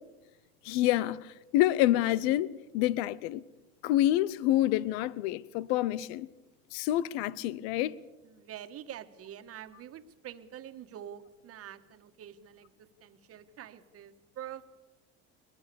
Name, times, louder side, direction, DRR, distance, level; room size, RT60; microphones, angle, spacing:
voice 1, 0.6-3.4 3.8-6.3 6.7-8.0, left 14 dB, 80° left, 0.8 m, -27 dB
voice 2, 8.2-14.7, right 10 dB, 50° right, 1.6 m, -46 dB
21.5 x 21.5 x 7.0 m
supercardioid pair, 95°, 30 cm